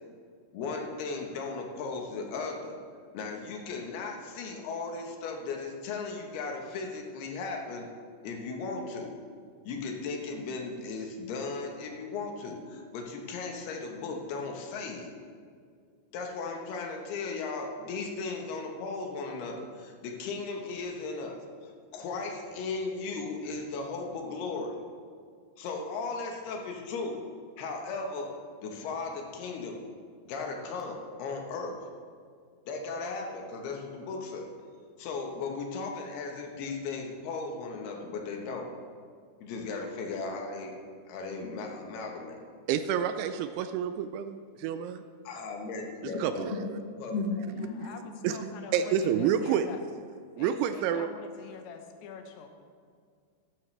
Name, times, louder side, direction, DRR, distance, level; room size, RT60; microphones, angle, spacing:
voice 1, 0.5-2.8 3.1-7.9 8.2-9.1 9.6-15.1 16.1-24.8 25.6-27.2 27.6-28.3 28.6-29.8 30.2-31.8 32.7-34.5 35.0-38.7 39.4-40.7 41.1-42.4 45.2-47.9 48.3-48.4 49.3-49.4, left 4 dB, 70° left, 2 dB, 3.1 m, -36 dB
voice 2, 42.7-45.0 46.2-46.6 47.2-47.3 47.8-48.0 48.2-49.7 50.4-51.1, right 9 dB, 90° right, 9 dB, 2.2 m, -29 dB
voice 3, 47.6-49.8 50.4-52.5, left 6 dB, 90° left, 5 dB, 3.3 m, -45 dB
13.5 x 12.5 x 3.3 m, 2.1 s
omnidirectional pair, 5.1 m